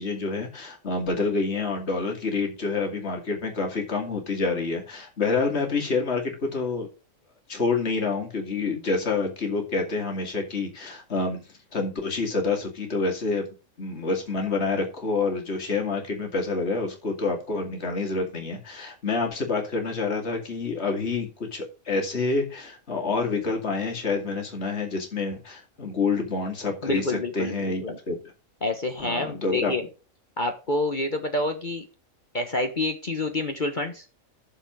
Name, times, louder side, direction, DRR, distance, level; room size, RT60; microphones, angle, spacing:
voice 1, 0.0-6.9 7.5-11.4 11.7-13.4 13.8-28.1 29.0-29.7, left 4 dB, 55° left, 2 dB, 2.7 m, -27 dB
voice 2, 26.8-28.0 28.6-29.8 30.4-31.8 32.3-34.0, left 2 dB, 40° left, 5 dB, 1.4 m, -28 dB
10.0 x 7.1 x 5.2 m, 0.33 s
omnidirectional pair, 1.4 m